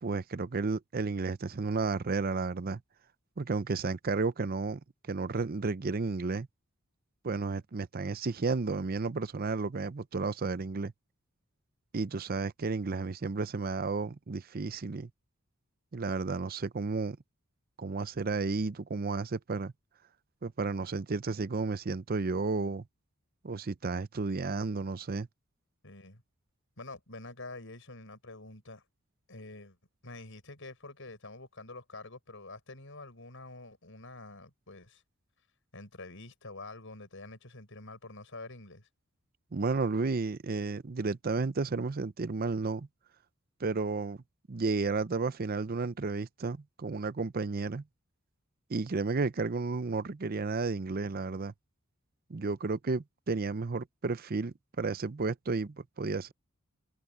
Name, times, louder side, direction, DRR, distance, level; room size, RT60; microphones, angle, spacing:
voice 1, 0.0-2.8 3.4-6.5 7.2-10.9 11.9-15.1 15.9-17.2 17.8-19.7 20.4-22.8 23.4-25.3 39.5-42.9 43.6-44.2 44.5-47.8 48.7-51.5 52.3-56.3, right 3 dB, 45° right, 0.6 m, -32 dB
voice 2, 25.8-26.2 26.8-28.8 29.3-29.8 30.0-35.0 35.7-38.9, left 2 dB, 60° left, 7.5 m, -47 dB
head